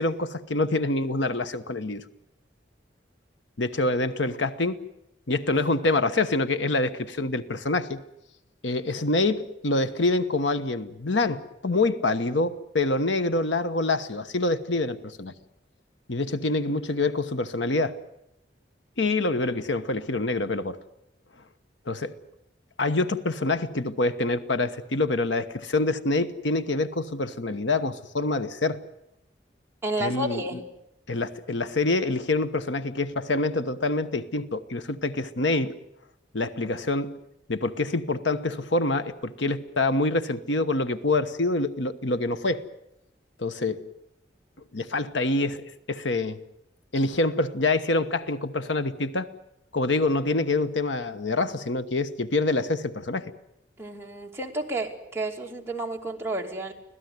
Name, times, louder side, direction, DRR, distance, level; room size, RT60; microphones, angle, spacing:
voice 1, 0.0-2.0 3.6-4.8 5.3-8.0 8.6-15.3 16.1-18.0 19.0-20.8 21.9-22.1 22.8-28.8 30.0-30.6 31.1-35.7 36.3-37.2 37.5-42.6 43.4-43.8 44.7-46.4 46.9-49.3 49.7-53.2, left 2 dB, 85° left, 11 dB, 1.2 m, -26 dB
voice 2, 29.8-30.6 53.8-56.7, right 1 dB, 15° right, 0 dB, 2.6 m, -31 dB
25.0 x 17.0 x 9.5 m, 0.82 s
head